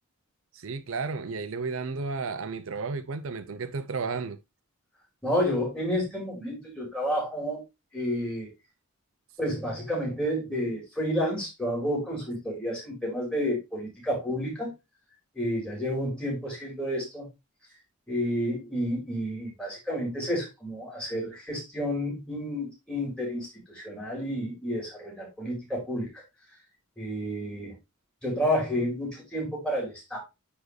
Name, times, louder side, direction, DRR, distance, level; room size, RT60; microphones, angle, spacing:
voice 1, 0.5-4.4, right 4 dB, 65° right, 0.5 m, -33 dB
voice 2, 5.2-7.6 7.9-8.5 9.4-14.7 15.3-17.3 18.1-26.2 27.0-27.7 28.2-30.2, equal, 5° left, 4.0 m, -30 dB
9.4 x 4.4 x 3.2 m
head